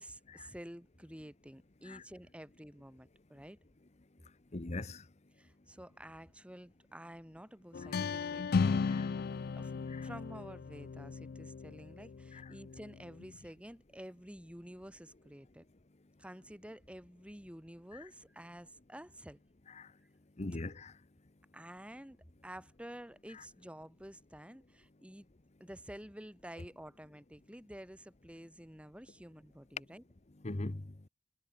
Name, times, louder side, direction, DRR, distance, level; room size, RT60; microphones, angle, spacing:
voice 1, 0.0-3.6 5.4-8.9 9.6-9.7 10.0-15.6 16.2-19.4 21.5-22.2 22.4-25.3 25.6-30.0, equal, 5° right, 4.8 m, -50 dB
voice 2, 4.5-5.0 7.9-8.0 8.9-9.1 9.9-10.1 19.8-19.9 20.4-21.0 30.4-30.9, left 2 dB, 40° left, 1.0 m, -40 dB
sound 1, 7.7-13.4, left 5 dB, 60° left, 0.4 m, -36 dB
head